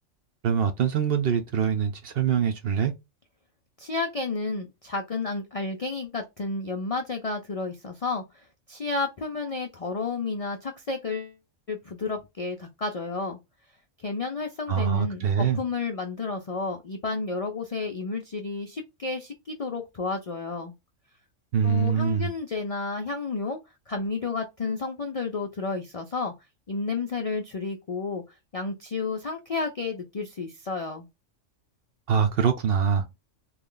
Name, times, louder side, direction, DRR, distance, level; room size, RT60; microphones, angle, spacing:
voice 1, 0.4-2.9 14.7-15.6 21.5-22.3 32.1-33.0, right 7 dB, 60° right, 0.7 m, -24 dB
voice 2, 3.8-11.4 11.7-13.4 14.0-20.7 21.6-23.6 23.9-26.3 26.7-31.1, left 4 dB, 55° left, 0.4 m, -31 dB
3.2 x 2.3 x 3.7 m
omnidirectional pair, 1.3 m